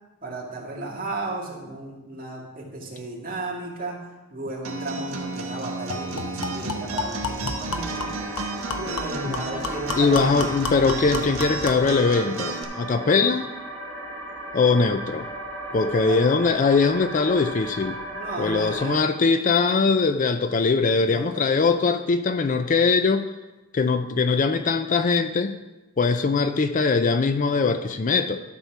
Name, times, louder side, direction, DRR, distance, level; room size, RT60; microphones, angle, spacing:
voice 1, 0.2-8.1 8.8-10.5 15.7-16.2 18.1-19.0 21.0-21.4, right 2 dB, 40° right, -3 dB, 2.1 m, -34 dB
Acoustic guitar, 4.6-12.6, right 3 dB, 75° right, 1.3 m, -33 dB
sound 1, 5.0-5.1 5.4-5.5 5.9-11.9, left 3 dB, 75° left, 1.0 m, -32 dB
sound 2, 7.7-19.0, right 1 dB, 10° left, 2.7 m, -36 dB
voice 2, 10.0-13.5 14.5-15.3 15.7-18.0 18.4-23.3 23.7-25.6 26.0-28.4, left 4 dB, 35° left, 9 dB, 0.3 m, -21 dB
12.5 x 4.3 x 5.9 m, 1.1 s
head